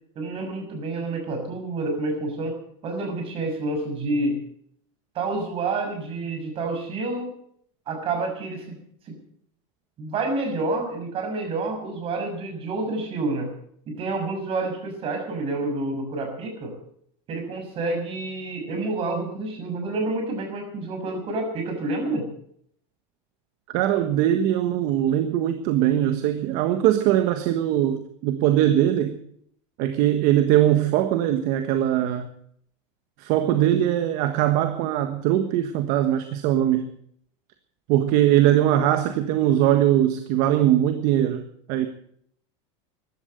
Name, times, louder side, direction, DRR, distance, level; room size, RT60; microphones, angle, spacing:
voice 1, 0.1-2.6 2.8-4.4 5.1-7.3 7.9-8.8 9.1-9.2 10.0-13.5 13.9-16.7 17.3-22.3, right 2 dB, 35° right, 6.3 m, -28 dB
voice 2, 23.7-29.2 29.8-32.3 33.2-36.9 37.9-41.9, right 12 dB, 55° right, 1.4 m, -21 dB
15.0 x 12.0 x 7.8 m
supercardioid pair, 150°, 16 cm